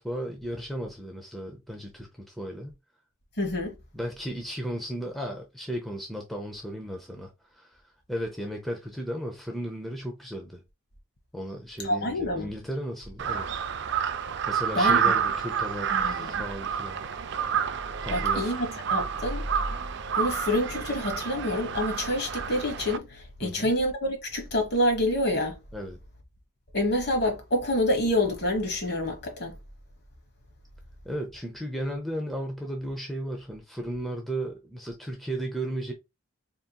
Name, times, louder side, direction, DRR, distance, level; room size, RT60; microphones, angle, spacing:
voice 1, 0.0-2.7 3.9-7.8 8.1-10.6 11.3-13.6 14.5-17.0 18.0-18.6 23.4-23.7 25.7-26.0 31.0-35.9, right 1 dB, ahead, 0.6 m, -35 dB
voice 2, 3.4-3.7 11.8-12.5 14.7-15.1 15.9-16.4 18.1-19.5 20.1-25.6 26.7-29.6, left 1 dB, 50° left, 1.3 m, -27 dB
Crow, 13.2-23.0, right 7 dB, 50° right, 0.4 m, -29 dB
4.3 x 3.6 x 2.3 m
head